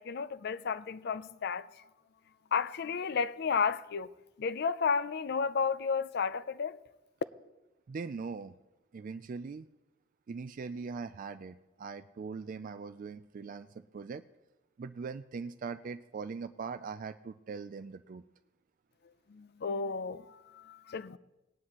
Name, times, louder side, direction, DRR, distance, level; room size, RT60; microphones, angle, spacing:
voice 1, 0.0-1.8 2.5-4.1 4.4-6.8 19.3-21.2, left 5 dB, 55° left, 0.4 m, -32 dB
voice 2, 7.9-8.5 8.9-9.7 10.3-14.2 14.8-18.2, right 5 dB, 40° right, 0.3 m, -41 dB
19.0 x 9.8 x 3.0 m
head